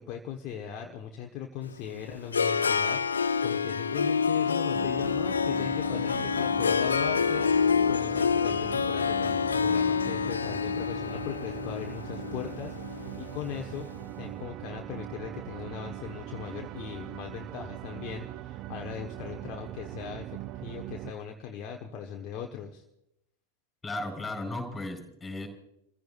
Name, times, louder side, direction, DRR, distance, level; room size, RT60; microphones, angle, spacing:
voice 1, 0.0-13.9 14.2-22.8, left 8 dB, 35° left, 2 dB, 1.2 m, -39 dB
Harp, 1.7-13.8, left 6 dB, 75° left, 0.4 m, -27 dB
sound 1, 4.7-21.1, right 14 dB, 35° right, 0.6 m, -41 dB
voice 2, 23.8-25.5, left 2 dB, 10° left, 2 dB, 4.6 m, -35 dB
29.5 x 15.5 x 2.5 m, 0.83 s
figure-of-eight pair, 90°, 0 cm